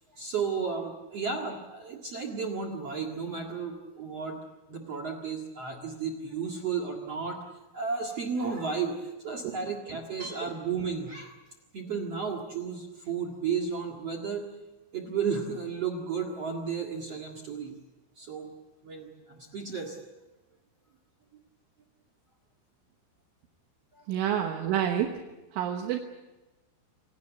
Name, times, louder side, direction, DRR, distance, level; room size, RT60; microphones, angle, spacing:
voice 1, 0.1-4.4 4.7-7.4 7.7-11.3 11.7-14.4 14.9-17.8 18.2-18.5 18.8-20.0 23.9-24.0 24.5-24.6, right 5 dB, 55° right, 5 dB, 1.7 m, -33 dB
voice 2, 24.1-25.2 25.5-26.0, right 10 dB, 75° right, 4 dB, 3.6 m, -28 dB
27.0 x 17.5 x 8.3 m, 1.1 s
omnidirectional pair, 5.8 m